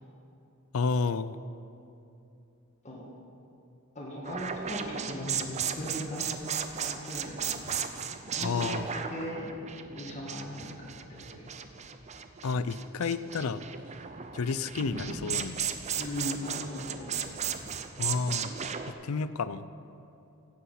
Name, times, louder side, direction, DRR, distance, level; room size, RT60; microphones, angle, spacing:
voice 1, 0.7-1.4 8.4-8.9 12.4-13.6 14.3-15.5 18.0-18.5 19.0-19.6, left 4 dB, 70° left, 14 dB, 0.5 m, -30 dB
voice 2, 4.0-6.2 6.8-7.7 8.4-8.7 8.9-9.5 9.9-11.5 16.0-17.1, left 1 dB, 30° left, -4 dB, 1.8 m, -38 dB
sound 1, 4.2-18.9, right 7 dB, 30° right, 0.5 m, -36 dB
sound 2, 12.9-18.5, equal, 80° right, 2.9 m, -56 dB
sound 3, 14.9-16.5, equal, ahead, 1.6 m, -53 dB
15.5 x 8.6 x 5.7 m, 2.8 s
head